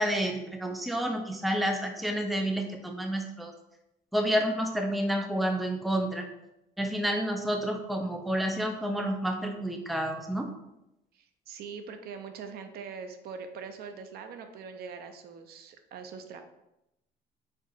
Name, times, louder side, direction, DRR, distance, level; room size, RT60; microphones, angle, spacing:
voice 1, 0.0-3.5 4.1-6.3 6.8-10.5, equal, ahead, 4 dB, 0.5 m, -29 dB
voice 2, 11.1-16.4, right 5 dB, 65° right, 7 dB, 0.5 m, -42 dB
4.5 x 3.7 x 2.4 m, 0.87 s
cardioid pair, 110°, 17 cm